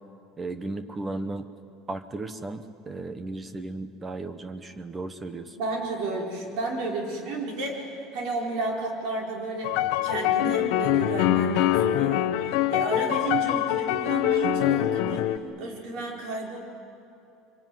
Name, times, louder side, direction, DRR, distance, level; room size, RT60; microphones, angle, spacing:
voice 1, 0.4-1.5 1.9-5.6, right 2 dB, 15° right, 11 dB, 1.0 m, -35 dB
voice 2, 5.6-16.6, right 2 dB, 50° right, 0 dB, 4.8 m, -32 dB
sound 1, 9.6-15.4, left 12 dB, 60° left, 0.9 m, -24 dB
24.5 x 24.0 x 9.4 m, 2.7 s
cardioid pair, 180°, 0 cm